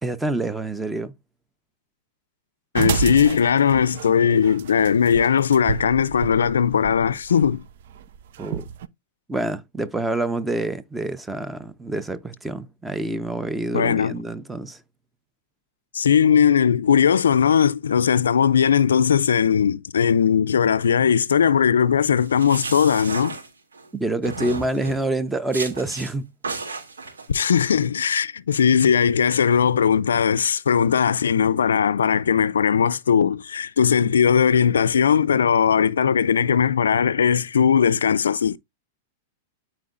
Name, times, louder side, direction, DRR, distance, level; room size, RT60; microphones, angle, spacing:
voice 1, 0.0-1.1 8.4-8.7 9.3-14.8 23.9-26.3, right 2 dB, 10° right, 0.9 m, -27 dB
voice 2, 2.7-7.6 13.7-14.2 15.9-23.4 27.3-38.6, left 7 dB, 85° left, 0.4 m, -19 dB
sound 1, 2.7-8.9, right 8 dB, 65° right, 0.6 m, -30 dB
sound 2, 22.2-23.9 24.2-25.0 25.5-26.1 26.4-27.3, right 3 dB, 90° right, 2.7 m, -33 dB
13.0 x 4.5 x 2.5 m
hypercardioid pair, 105°, 0 cm